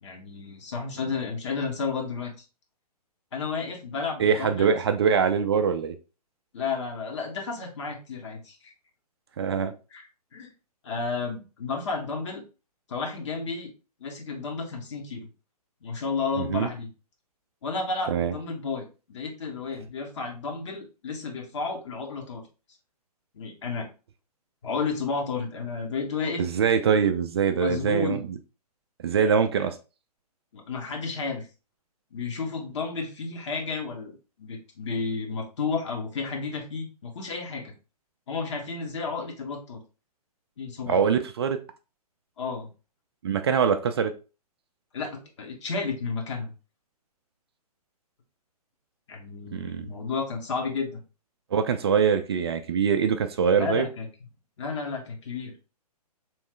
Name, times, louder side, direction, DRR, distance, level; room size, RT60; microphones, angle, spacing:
voice 1, 0.0-2.4 3.3-4.7 6.5-8.7 9.9-10.0 10.3-10.5 10.8-12.4 12.9-13.7 14.0-15.3 15.8-16.9 17.6-22.4 23.3-23.9 24.6-26.4 27.5-28.3 29.2-29.5 30.5-31.5 32.1-37.7 38.3-39.8 40.6-41.0 42.4-42.7 44.9-46.5 49.1-51.0 53.5-54.1 54.6-55.6, left 4 dB, 45° left, 1 dB, 1.2 m, -32 dB
voice 2, 4.2-6.0 9.4-9.7 16.4-16.7 18.1-18.3 26.4-28.2 29.0-29.8 40.9-41.6 43.2-44.1 49.5-49.9 51.5-53.9, right 6 dB, 40° right, 8 dB, 0.4 m, -23 dB
3.5 x 3.1 x 3.1 m, 0.32 s
figure-of-eight pair, 125°, 20 cm